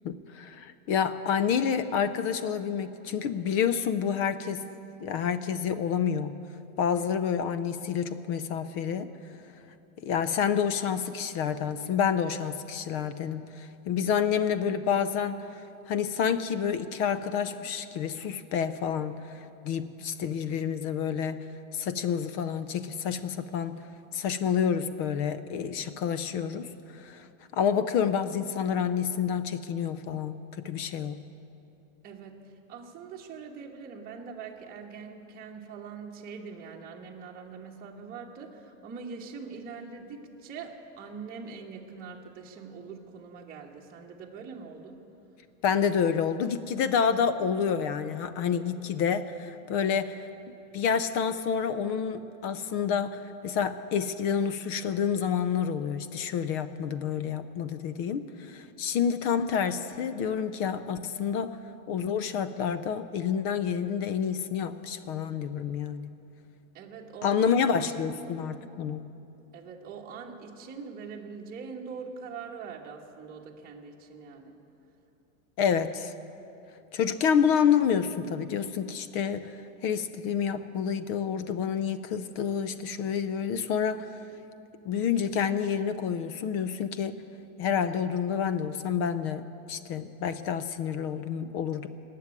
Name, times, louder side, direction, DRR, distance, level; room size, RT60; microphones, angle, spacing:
voice 1, 0.0-4.6 5.0-6.3 6.8-9.1 10.0-15.4 15.9-21.4 21.7-23.8 24.1-27.2 27.5-31.2 45.6-50.1 50.7-61.6 61.9-66.1 67.2-69.0 75.6-76.1 76.9-79.5 79.8-84.1 84.9-87.2 87.6-91.9, left 7 dB, 35° left, 12 dB, 0.5 m, -28 dB
voice 2, 32.0-45.0 66.7-68.2 69.5-74.6, right 5 dB, 20° right, -2 dB, 1.3 m, -43 dB
19.5 x 7.6 x 9.7 m, 2.8 s
supercardioid pair, 145°, 41 cm